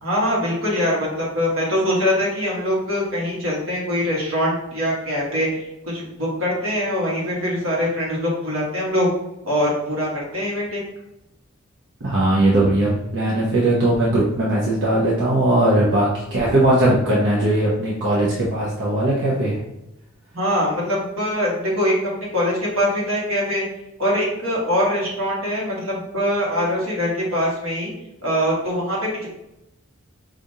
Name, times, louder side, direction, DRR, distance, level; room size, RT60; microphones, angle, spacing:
voice 1, 0.0-9.1 9.4-10.8 20.3-23.6 24.0-27.9 28.2-29.3, equal, 85° right, -4 dB, 1.4 m, -23 dB
voice 2, 12.0-19.6, right 1 dB, 65° right, -6 dB, 0.8 m, -19 dB
4.9 x 2.5 x 2.8 m, 0.88 s
head